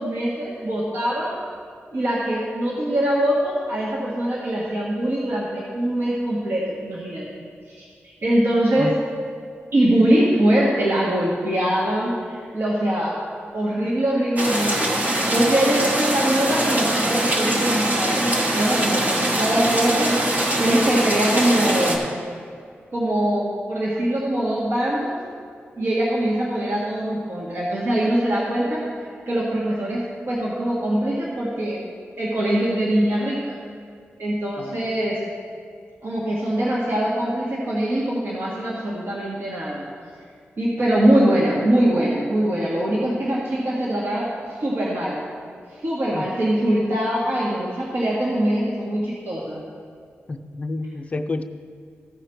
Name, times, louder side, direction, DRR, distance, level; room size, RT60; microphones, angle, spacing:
voice 1, 0.0-1.3 1.9-7.3 7.7-9.0 9.7-13.2 13.5-22.0 22.9-25.2 25.8-28.9 29.3-31.8 32.2-33.6 34.2-35.2 36.0-39.8 40.6-45.2 45.8-49.6, right 1 dB, 60° right, -5 dB, 1.5 m, -22 dB
sound 1, 14.4-22.0, right 1 dB, 40° right, 1.1 m, -22 dB
voice 2, 50.3-51.4, left 2 dB, 30° left, 7 dB, 0.4 m, -29 dB
14.5 x 4.9 x 4.6 m, 2.2 s
wide cardioid pair, 135°, 4 cm